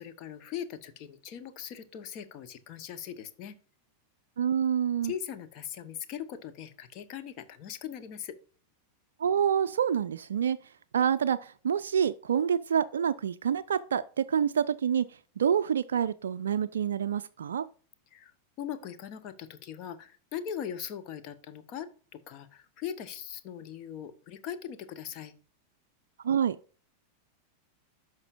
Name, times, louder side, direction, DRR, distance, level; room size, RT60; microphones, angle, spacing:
voice 1, 0.0-3.6 5.0-8.4 18.1-18.3 18.6-25.3, left 9 dB, 40° left, 0.8 m, -40 dB
voice 2, 4.4-5.1 9.2-10.6 10.9-15.0 15.4-17.7 26.2-26.6, right 8 dB, 65° right, 0.3 m, -27 dB
11.0 x 6.0 x 2.5 m
figure-of-eight pair, 90°, 0 cm